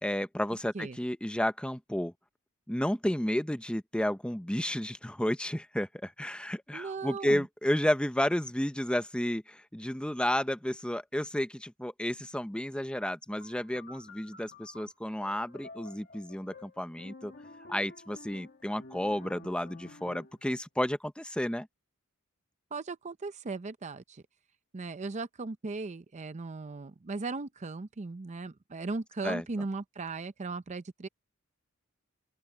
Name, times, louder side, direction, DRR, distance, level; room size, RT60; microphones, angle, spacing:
voice 1, 0.0-2.1 2.7-17.3 17.7-21.7 29.2-29.4, left 1 dB, 5° left, 0.8 m, -32 dB
voice 2, 6.7-7.5 22.7-24.2 24.7-31.1, right 3 dB, 35° right, 0.6 m, -37 dB
sound 1, 13.4-20.5, left 2 dB, 50° left, 1.9 m, -51 dB
open air
head